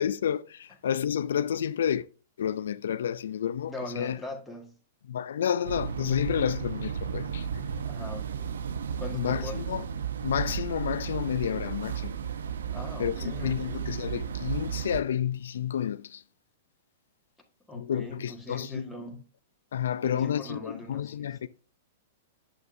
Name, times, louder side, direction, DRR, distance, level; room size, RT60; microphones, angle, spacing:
voice 1, 0.0-2.0 2.4-4.2 5.1-7.5 9.1-9.8 10.2-12.2 13.0-16.2 17.7-18.9 19.7-21.5, left 9 dB, 80° left, 0.4 m, -30 dB
voice 2, 3.6-4.8 7.8-8.5 9.0-9.7 12.7-13.8 17.7-19.2 20.0-21.5, left 1 dB, 5° left, 1.5 m, -41 dB
Highway Driving, 5.6-15.0, right 7 dB, 90° right, 0.6 m, -34 dB
8.2 x 6.5 x 2.6 m
hypercardioid pair, 145°, 0 cm